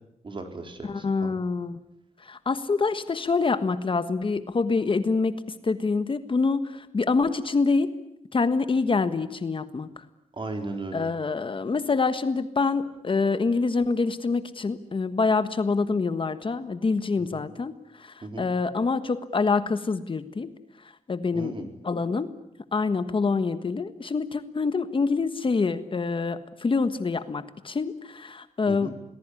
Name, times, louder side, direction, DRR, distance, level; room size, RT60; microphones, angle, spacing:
voice 1, 0.2-1.3 10.3-11.1 17.3-17.4 18.2-18.5 21.3-21.7 28.7-28.9, right 2 dB, 40° right, 5 dB, 4.5 m, -36 dB
voice 2, 0.9-1.8 2.2-7.9 8.3-9.9 10.9-20.5 21.1-21.5 21.8-22.3 22.7-29.0, left 4 dB, 45° left, 11 dB, 1.4 m, -26 dB
27.5 x 19.5 x 9.8 m, 0.82 s
wide cardioid pair, 125°, 13 cm